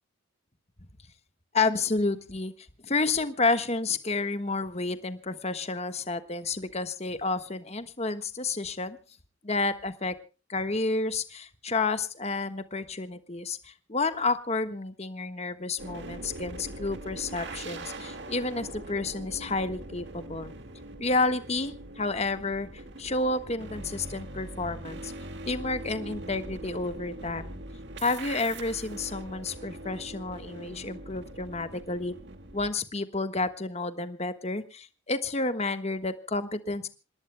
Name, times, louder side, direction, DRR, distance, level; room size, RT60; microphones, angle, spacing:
voice 1, 1.5-2.5 2.8-9.0 9.4-10.1 10.5-20.5 21.0-22.7 23.0-25.1 25.5-27.5 28.0-32.1 32.5-36.9, left 3 dB, 30° left, 9 dB, 1.3 m, -30 dB
sound 1, 15.8-32.7, right 1 dB, 55° right, 1.9 m, -42 dB
27.5 x 19.5 x 2.2 m, 0.34 s
head